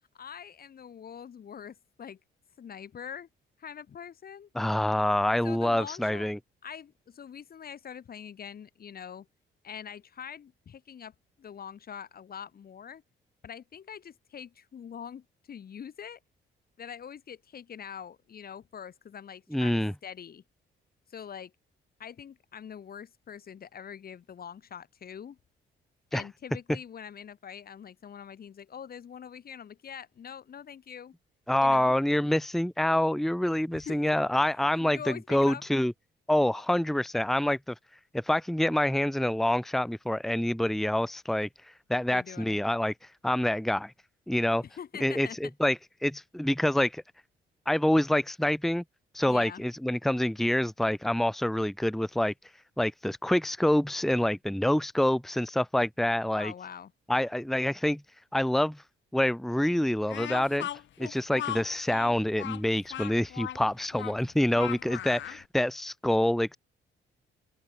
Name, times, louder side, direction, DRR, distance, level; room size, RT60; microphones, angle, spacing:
voice 1, 0.1-2.2 2.6-3.3 3.6-4.5 5.4-6.3 6.6-9.3 9.6-13.0 13.4-16.2 16.8-20.4 21.1-21.5 22.0-25.4 26.1-31.1 31.6-31.9 33.7-34.2 34.6-35.6 42.1-42.6 44.6-45.5 49.3-49.6 56.3-56.9, left 8 dB, 50° left, 1.6 m, -44 dB
voice 2, 4.5-6.4 19.5-19.9 26.1-26.2 31.5-35.9 36.3-37.7 38.1-41.5 41.9-42.9 43.2-43.9 44.3-44.6 45.0-47.0 47.7-48.8 49.1-52.3 52.8-56.5 57.1-58.0 58.3-58.8 59.1-60.7 61.0-66.6, left 1 dB, ahead, 1.0 m, -26 dB
Speech, 60.1-65.4, left 11 dB, 70° left, 2.2 m, -38 dB
open air
cardioid pair, 90°, 20 cm